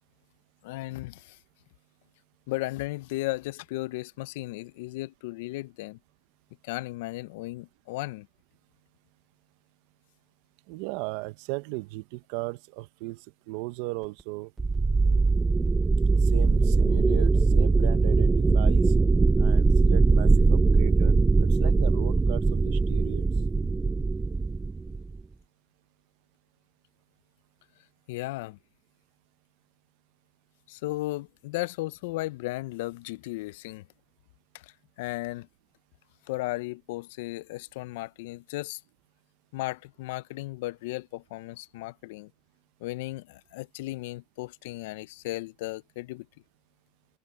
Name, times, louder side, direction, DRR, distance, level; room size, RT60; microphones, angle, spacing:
voice 1, 0.6-1.4 2.5-6.0 6.6-8.3 28.1-28.6 30.7-33.8 34.5-35.5 36.3-38.8 39.5-42.3 42.8-46.3, left 19 dB, 75° left, 0.5 m, -35 dB
voice 2, 10.7-14.5 16.2-18.9 19.4-23.2, right 22 dB, 60° right, 0.7 m, -36 dB
sound 1, 14.6-25.2, right 3 dB, 10° right, 0.3 m, -21 dB
supercardioid pair, 155°, 0 cm